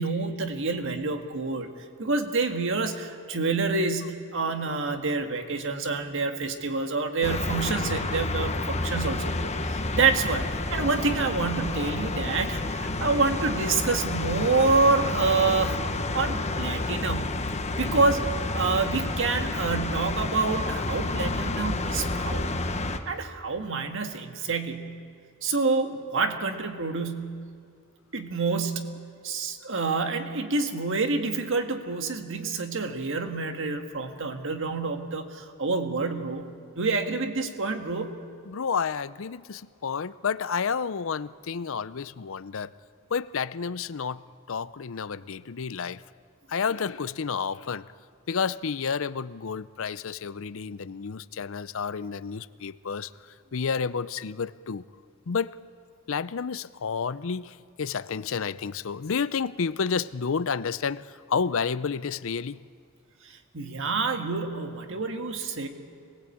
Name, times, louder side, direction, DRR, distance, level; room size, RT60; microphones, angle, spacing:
voice 1, 0.0-1.7 2.0-15.9 16.1-17.5 17.8-22.6 23.1-25.0 25.4-27.5 28.1-36.4 36.8-38.2 63.2-65.7, right 4 dB, 65° right, 6 dB, 1.8 m, -27 dB
sound 1, 7.2-23.0, left 2 dB, 30° left, 1.2 m, -30 dB
voice 2, 38.5-42.7 43.1-44.2 44.5-46.0 46.5-47.9 48.3-53.1 53.5-54.8 55.3-55.5 56.1-62.6, left 6 dB, 65° left, 17 dB, 0.6 m, -30 dB
26.0 x 19.5 x 8.6 m, 2.2 s
head